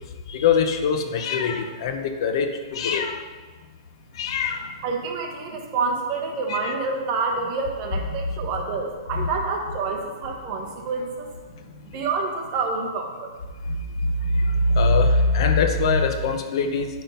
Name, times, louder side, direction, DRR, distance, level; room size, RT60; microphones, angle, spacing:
voice 1, 0.3-3.2 4.1-4.6 6.5-6.7 9.1-9.3 13.7-13.8 14.3-16.9, left 3 dB, 60° left, 6 dB, 0.8 m, -22 dB
voice 2, 4.8-11.3 11.9-13.1, right 4 dB, 35° right, 1 dB, 1.4 m, -27 dB
9.3 x 3.8 x 5.5 m, 1.4 s
hypercardioid pair, 140°, 3 cm